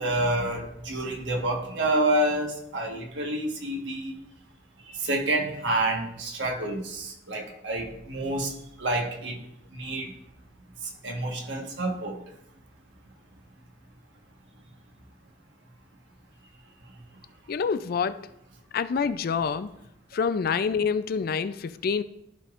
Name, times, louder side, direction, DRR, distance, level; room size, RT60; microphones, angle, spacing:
voice 1, 0.0-4.1 4.8-8.5 8.8-9.4 9.7-10.1 10.8-12.2, right 1 dB, 80° right, 1.4 m, -28 dB
voice 2, 17.5-18.2 18.7-19.7 20.1-22.0, left 6 dB, 55° left, 0.4 m, -27 dB
13.5 x 5.1 x 2.5 m
head